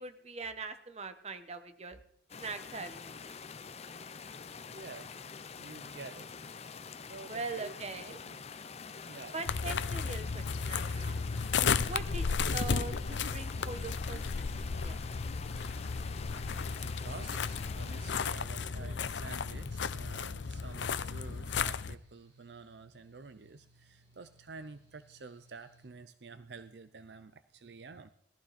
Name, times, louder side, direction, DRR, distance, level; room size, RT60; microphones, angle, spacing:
voice 1, 0.0-2.0 2.4-3.4 7.3-8.2 9.3-11.2 11.8-14.2 14.6-15.0 18.6-19.0, right 3 dB, 35° right, 9 dB, 1.2 m, -42 dB
sound 1, 2.3-18.3, left 5 dB, 35° left, 0.7 m, -46 dB
voice 2, 4.7-5.2 5.5-6.3 7.1-7.8 8.2-8.4 9.1-9.4 16.8-28.1, right 4 dB, 65° right, 11 dB, 0.6 m, -50 dB
sound 2, 9.5-22.0, left 5 dB, 85° left, 0.6 m, -34 dB
Mechanical fan, 11.2-25.9, right 1 dB, 85° right, 6.5 m, -65 dB
18.5 x 14.5 x 4.3 m, 0.66 s
head